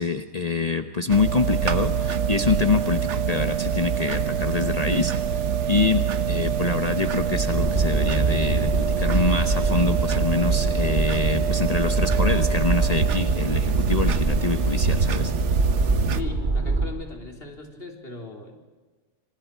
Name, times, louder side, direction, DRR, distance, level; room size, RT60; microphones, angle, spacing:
voice 1, 0.0-15.3, left 4 dB, 35° left, 7 dB, 1.1 m, -25 dB
sound 1, 1.1-16.2, right 7 dB, 70° right, 1.2 m, -25 dB
sound 2, 7.0-16.9, right 2 dB, 40° right, 2.0 m, -25 dB
voice 2, 16.1-18.6, left 3 dB, 50° left, 2 dB, 3.8 m, -38 dB
27.0 x 26.5 x 4.6 m, 1.3 s
omnidirectional pair, 1.3 m